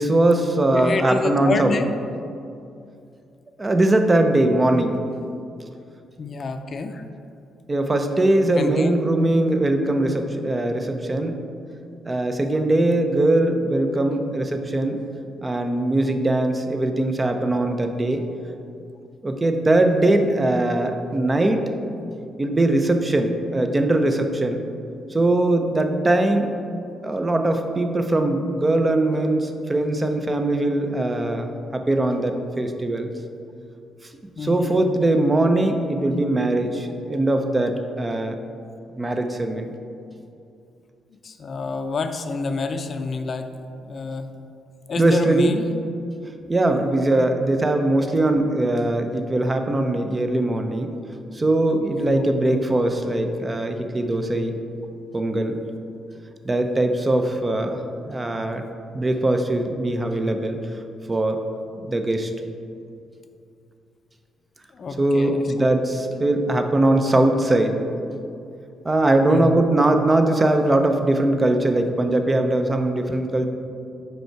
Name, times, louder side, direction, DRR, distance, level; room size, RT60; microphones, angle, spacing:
voice 1, 0.0-1.8 3.6-5.0 7.7-11.4 12.0-15.0 15.4-18.3 19.2-21.7 22.4-24.6 25.1-26.5 27.0-33.1 34.4-38.4 39.0-39.7 45.0-45.5 46.5-50.9 51.3-54.5 55.1-55.6 56.4-58.6 58.9-60.6 61.1-61.4 61.8-62.3 65.0-67.8 68.8-73.5, right 1 dB, 20° right, 6 dB, 0.5 m, -21 dB
voice 2, 0.7-1.9 6.2-7.0 8.5-8.9 34.4-34.8 41.2-43.5 43.9-44.3 44.9-45.7 51.9-52.2 64.7-65.7 69.3-69.6, left 4 dB, 45° left, 7 dB, 0.5 m, -28 dB
5.3 x 4.5 x 4.5 m, 2.6 s
cardioid pair, 90°, 0 cm